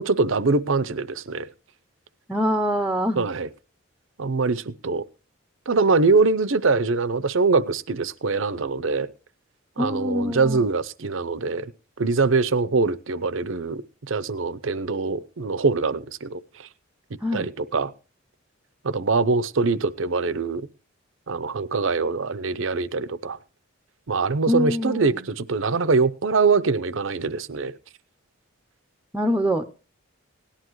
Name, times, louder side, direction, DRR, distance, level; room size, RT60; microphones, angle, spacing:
voice 1, 0.0-1.5 3.2-3.5 4.2-5.0 5.7-9.1 9.8-11.7 12.0-13.8 14.1-16.7 17.3-17.9 18.8-20.7 21.3-23.4 24.1-27.7, right 4 dB, 60° right, 0.7 m, -23 dB
voice 2, 2.3-3.2 9.8-10.7 17.2-17.5 24.5-25.2 29.1-29.7, equal, 5° right, 0.7 m, -24 dB
18.0 x 11.5 x 3.1 m
head